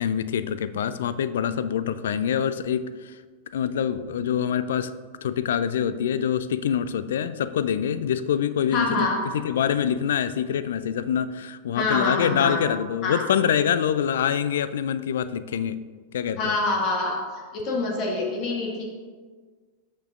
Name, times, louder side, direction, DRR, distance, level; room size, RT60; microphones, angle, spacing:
voice 1, 0.0-3.2 3.5-4.9 5.2-9.1 9.3-15.8 16.1-16.5, left 8 dB, 60° left, 14 dB, 0.3 m, -25 dB
voice 2, 8.7-9.2 11.7-12.6 13.0-13.2 16.4-18.9, left 3 dB, 40° left, 0 dB, 1.8 m, -26 dB
13.5 x 5.8 x 2.6 m, 1.5 s
figure-of-eight pair, 90°, 0 cm